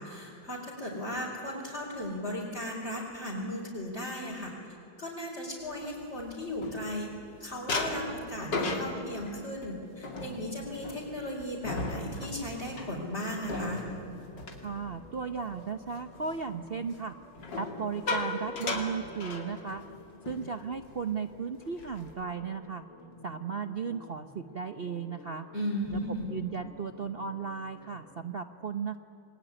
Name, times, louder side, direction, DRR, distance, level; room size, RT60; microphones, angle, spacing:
voice 1, 0.0-4.5 5.0-7.1 7.4-13.8 25.5-26.3, left 1 dB, 35° left, -5 dB, 4.8 m, -36 dB
sound 1, 5.8-7.2 7.7-15.5 15.9-16.2 17.4-20.0 20.3-20.5 20.8-21.1 21.5-22.2, left 2 dB, 65° left, 3.3 m, -36 dB
sound 2, 12.4-28.2, left 2 dB, 80° left, 5.5 m, -52 dB
voice 2, 14.6-17.1 17.6-19.8 20.3-22.8 23.2-25.5 25.9-26.0 26.3-29.0, right 5 dB, 55° right, 9 dB, 0.6 m, -35 dB
27.5 x 21.5 x 9.9 m, 2.9 s
omnidirectional pair, 2.1 m